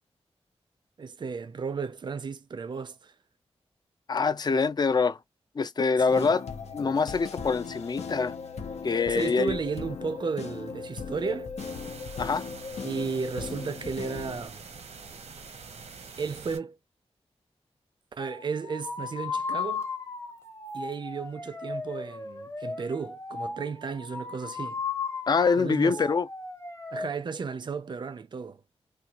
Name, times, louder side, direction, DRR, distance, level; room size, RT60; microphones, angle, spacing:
voice 1, 1.0-3.1 6.1-6.3 9.1-11.5 12.8-14.7 16.2-16.8 18.1-19.9 20.7-24.8 25.6-26.0 26.9-28.6, right 5 dB, 45° right, 0.4 m, -34 dB
voice 2, 4.1-5.2 5.6-6.4 6.7-8.3 8.8-9.6 12.2-12.5 25.3-26.3, left 5 dB, 40° left, 0.4 m, -25 dB
sound 1, 6.0-14.5, left 5 dB, 90° left, 0.6 m, -38 dB
sound 2, 11.6-16.6, right 5 dB, 85° right, 0.9 m, -45 dB
sound 3, 18.2-27.1, left 4 dB, 25° left, 0.8 m, -36 dB
3.4 x 2.3 x 2.9 m
wide cardioid pair, 150°, 11 cm